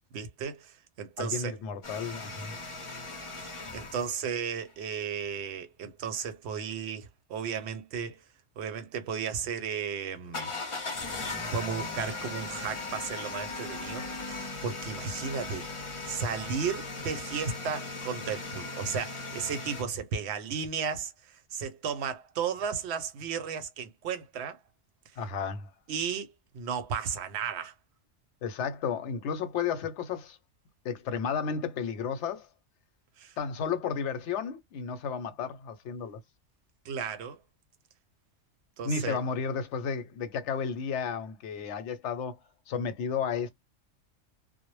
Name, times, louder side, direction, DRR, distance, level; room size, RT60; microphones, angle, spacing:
voice 1, 0.1-1.6 3.3-8.2 8.6-10.5 11.5-15.7 16.0-24.6 25.9-27.7 33.2-33.3 36.9-37.4 38.8-39.2, right 6 dB, 65° right, 0.8 m, -34 dB
voice 2, 1.2-2.6 25.2-25.7 28.4-30.4 30.8-32.5 33.4-36.2 38.8-42.4 42.7-43.5, left 6 dB, 70° left, 0.9 m, -33 dB
sound 1, 1.8-4.1 10.3-19.8, left 3 dB, 35° left, 0.5 m, -38 dB
2.0 x 2.0 x 3.0 m
omnidirectional pair, 1.3 m